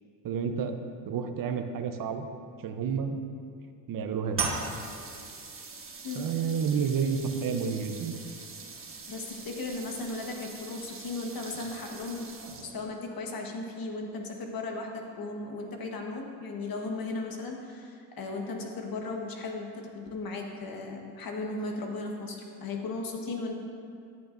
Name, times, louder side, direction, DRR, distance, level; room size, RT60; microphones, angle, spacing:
voice 1, 0.2-0.7 1.1-2.3 2.6-3.2 3.9-4.5 6.2-8.2, right 6 dB, 45° right, 7 dB, 0.8 m, -30 dB
sound 1, 4.3-12.9, right 4 dB, 30° right, 1.2 m, -40 dB
voice 2, 9.1-12.3 12.6-23.6, left 3 dB, 45° left, 2 dB, 1.4 m, -36 dB
10.5 x 8.8 x 2.6 m, 2.3 s
cardioid pair, 95°, 47 cm